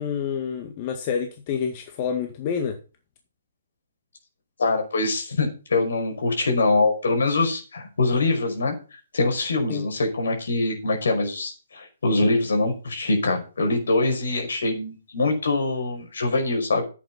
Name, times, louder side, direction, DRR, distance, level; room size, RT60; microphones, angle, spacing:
voice 1, 0.0-2.8 9.7-9.8, left 7 dB, 40° left, 1.9 m, -28 dB
voice 2, 4.6-16.8, left 2 dB, 70° left, 5.3 m, -24 dB
10.5 x 8.4 x 5.9 m
figure-of-eight pair, 135°, 0 cm